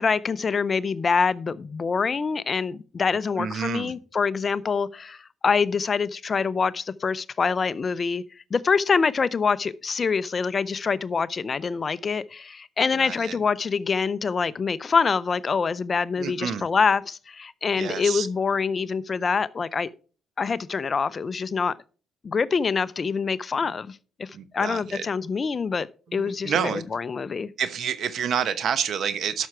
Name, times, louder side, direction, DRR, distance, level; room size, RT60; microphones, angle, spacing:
voice 1, 0.0-8.2 8.5-19.9 20.4-21.7 22.2-27.5, left 5 dB, 40° left, 0.5 m, -25 dB
voice 2, 3.4-3.9 12.9-13.4 16.2-16.7 17.8-18.3 24.3-25.1 26.2-26.8 27.6-29.5, right 8 dB, 65° right, 1.0 m, -28 dB
12.5 x 5.9 x 4.4 m
cardioid pair, 90°, 0 cm